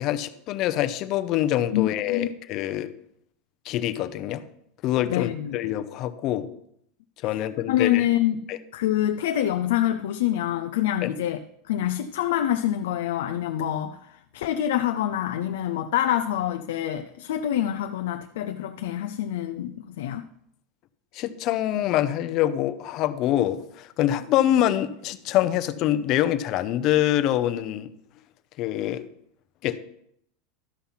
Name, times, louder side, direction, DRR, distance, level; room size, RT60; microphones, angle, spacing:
voice 1, 0.0-2.9 3.6-4.4 4.8-6.5 7.2-8.1 8.5-8.6 11.0-11.1 21.1-27.9 28.6-29.1 29.6-29.8, left 12 dB, 45° left, 0.7 m, -25 dB
voice 2, 1.7-2.3 5.0-5.6 7.3-7.4 7.7-11.4 11.7-20.2, left 12 dB, 85° left, 0.5 m, -26 dB
13.0 x 5.8 x 5.7 m
supercardioid pair, 140°, 0 cm